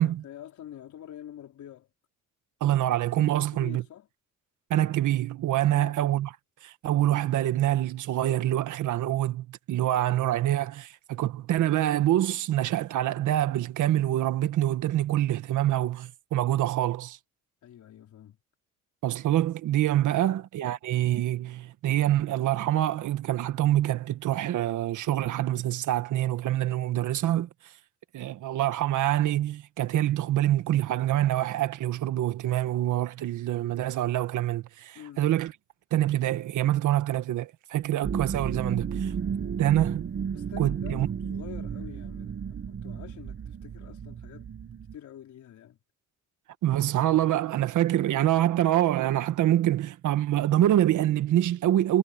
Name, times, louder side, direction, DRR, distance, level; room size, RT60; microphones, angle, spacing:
voice 1, 0.0-1.9 3.2-4.1 5.7-6.0 17.6-18.4 20.2-20.3 34.9-35.3 38.7-39.6 40.3-44.5 44.9-45.8, left 11 dB, 70° left, 4.6 m, -46 dB
voice 2, 2.6-3.8 4.7-6.3 6.6-17.2 19.0-27.5 28.1-35.5 35.9-39.1 39.6-40.1 40.6-41.1 46.6-52.0, right 13 dB, 80° right, 1.7 m, -25 dB
sound 1, 38.0-45.0, right 7 dB, 40° right, 1.2 m, -33 dB
cardioid pair, 90°, 30 cm